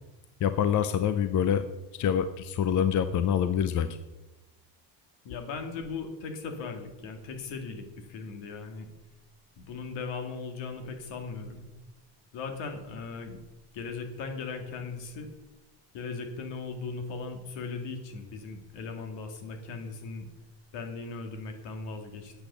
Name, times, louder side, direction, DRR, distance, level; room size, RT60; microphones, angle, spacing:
voice 1, 0.4-1.6 1.9-3.9, left 9 dB, 40° left, 12 dB, 0.6 m, -26 dB
voice 2, 5.2-8.9 9.6-11.7 12.3-13.4 13.7-15.3 15.9-20.3 20.7-22.3, left 4 dB, 75° left, 5 dB, 2.2 m, -38 dB
9.0 x 7.9 x 6.8 m, 1.1 s
cardioid pair, 125°, 44 cm